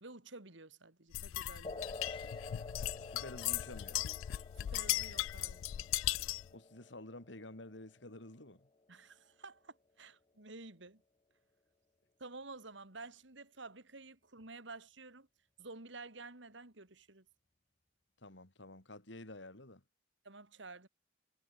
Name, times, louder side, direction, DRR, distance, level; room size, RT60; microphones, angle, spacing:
voice 1, 0.0-1.9 4.6-5.6 8.9-11.0 12.2-15.3 15.6-17.2 20.2-20.9, right 3 dB, 65° right, 2.7 m, -51 dB
sound 1, 1.1-6.5, left 15 dB, 85° left, 0.3 m, -38 dB
sound 2, 1.6-8.7, left 3 dB, 25° left, 0.7 m, -50 dB
Keyboard (musical), 2.3-8.5, right 1 dB, 30° right, 6.0 m, -76 dB
voice 2, 3.0-4.1 6.5-8.7 18.2-19.8, left 1 dB, 65° left, 3.5 m, -51 dB
head